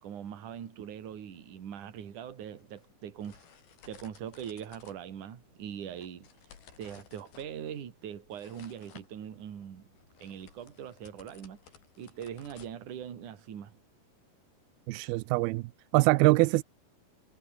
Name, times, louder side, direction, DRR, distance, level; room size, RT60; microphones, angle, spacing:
voice 1, 0.0-3.5 3.9-6.3 6.8-9.9 10.2-11.6 12.0-13.8, right 9 dB, 55° right, 3.8 m, -42 dB
sound 1, 2.2-13.3, left 7 dB, 80° left, 5.4 m, -58 dB
voice 2, 14.9-16.6, right 22 dB, 85° right, 2.5 m, -24 dB
omnidirectional pair, 4.3 m